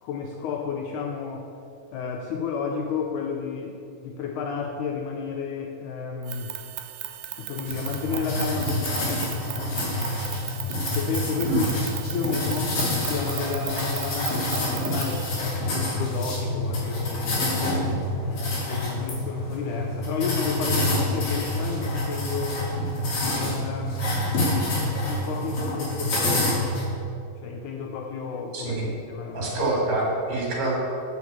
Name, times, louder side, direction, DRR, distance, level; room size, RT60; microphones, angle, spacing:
voice 1, 0.0-1.5 1.9-6.6 7.4-9.4 10.9-11.7 12.1-17.5 18.2-22.6 23.4-24.3 25.0-26.7 27.4-28.8 29.1-29.5, left 5 dB, 80° left, 2 dB, 1.8 m, -32 dB
sound 1, 6.2-15.4, right 12 dB, 85° right, 2.4 m, -37 dB
sound 2, 7.7-26.8, left 1 dB, 55° left, 3.5 m, -27 dB
voice 2, 28.5-28.9 29.3-30.7, right 2 dB, 65° right, -3 dB, 3.6 m, -26 dB
7.7 x 6.0 x 7.2 m, 2.6 s
omnidirectional pair, 4.0 m